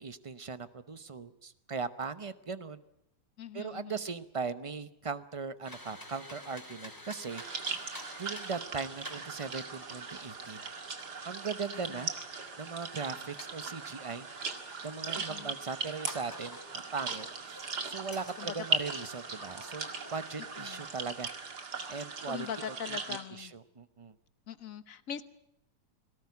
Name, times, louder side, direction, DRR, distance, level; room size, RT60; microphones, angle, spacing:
voice 1, 0.0-2.8 3.5-7.4 8.2-10.6 11.2-12.1 12.6-14.3 14.8-17.3 17.8-21.3 21.9-22.5 22.9-24.1, right 5 dB, 30° right, 13 dB, 0.7 m, -39 dB
voice 2, 3.4-4.0 11.7-12.0 15.1-15.5 18.4-18.6 20.6-20.8 22.3-23.5 24.5-25.2, left 8 dB, 55° left, 13 dB, 1.4 m, -42 dB
sound 1, 5.6-20.8, left 1 dB, 10° left, 3.7 m, -51 dB
sound 2, 7.3-23.2, right 4 dB, 75° right, 2.7 m, -39 dB
21.0 x 18.0 x 9.6 m, 0.78 s
omnidirectional pair, 1.8 m